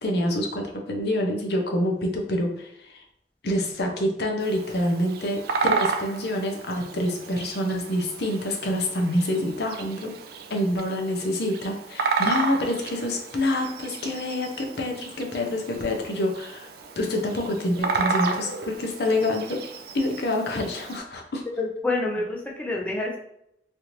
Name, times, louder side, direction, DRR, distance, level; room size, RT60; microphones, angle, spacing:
voice 1, 0.0-3.0 3.4-10.1 10.5-16.7 17.0-19.6 19.9-21.4, left 1 dB, 65° left, 2 dB, 0.6 m, -27 dB
Bird vocalization bird call bird song, 4.4-21.0, right 4 dB, 60° right, 0.3 m, -32 dB
voice 2, 21.6-23.2, left 2 dB, 5° left, -2 dB, 0.6 m, -27 dB
3.3 x 2.6 x 2.9 m, 0.75 s
head